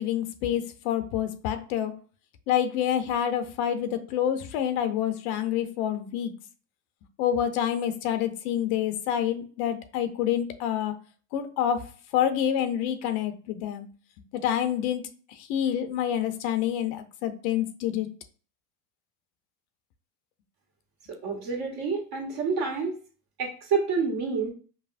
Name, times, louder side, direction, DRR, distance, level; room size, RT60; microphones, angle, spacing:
voice 1, 0.0-1.9 2.5-6.3 7.2-10.9 11.3-13.9 14.3-15.0 15.3-18.1, left 10 dB, 70° left, 9 dB, 0.8 m, -27 dB
voice 2, 21.2-22.9 23.4-24.5, right 5 dB, 55° right, 0 dB, 1.6 m, -28 dB
5.5 x 2.1 x 2.6 m, 0.39 s
supercardioid pair, 110°, 45 cm